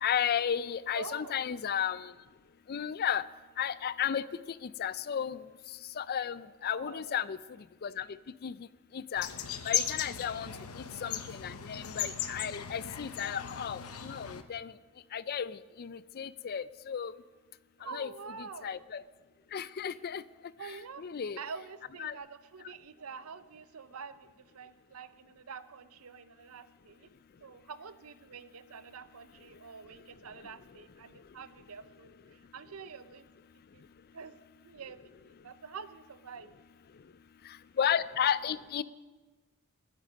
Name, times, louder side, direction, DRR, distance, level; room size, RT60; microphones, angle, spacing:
voice 1, 0.0-2.1 2.7-3.2 3.6-4.2 4.6-5.4 6.0-7.4 7.8-8.1 8.4-8.5 8.9-9.3 9.7-14.7 15.1-17.1 17.9-18.1 18.6-19.0 19.5-20.2 21.0-21.4 22.0-22.1 37.8-38.8, left 8 dB, 45° left, 17 dB, 0.4 m, -33 dB
voice 2, 0.9-1.4 6.7-7.3 10.5-11.8 13.0-13.3 17.8-18.9 19.9-20.1 20.6-21.0 21.4-27.1 27.4-33.3 33.7-33.8 34.1-35.0 35.2-36.5, right 5 dB, 80° right, 13 dB, 0.7 m, -47 dB
sound 1, 9.2-14.4, left 9 dB, 90° left, 0.9 m, -37 dB
20.5 x 9.1 x 5.2 m, 1.3 s
head